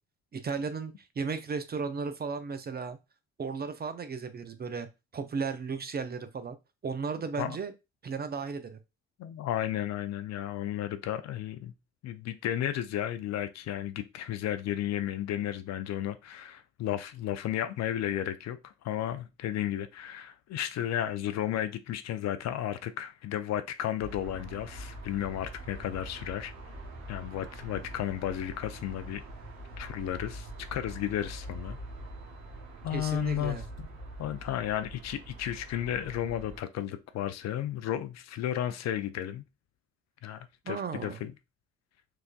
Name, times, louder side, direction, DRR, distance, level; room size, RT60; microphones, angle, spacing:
voice 1, 0.3-3.0 3.4-4.9 5.1-6.6 6.8-7.7 8.0-8.8 32.9-33.7 40.7-41.2, right 5 dB, 30° right, 0.5 m, -35 dB
voice 2, 9.2-11.7 12.0-26.5 27.1-29.2 29.8-31.8 32.8-33.6 34.2-39.4 40.2-41.3, left 11 dB, 50° left, 0.5 m, -33 dB
sound 1, 24.0-36.6, right 1 dB, 70° right, 0.9 m, -44 dB
4.5 x 2.5 x 2.3 m
hypercardioid pair, 45°, 34 cm